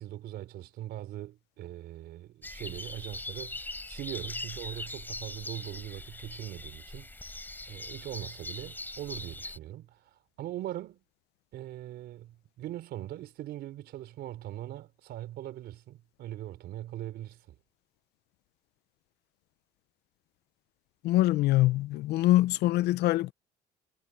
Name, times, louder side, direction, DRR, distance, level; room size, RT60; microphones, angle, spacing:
voice 1, 0.0-11.0 11.5-17.6, right 13 dB, 75° right, 3.8 m, -41 dB
sound 1, 2.4-9.6, left 2 dB, 10° left, 4.9 m, -41 dB
voice 2, 21.0-23.3, left 16 dB, 80° left, 0.6 m, -24 dB
cardioid pair, 110°, 17 cm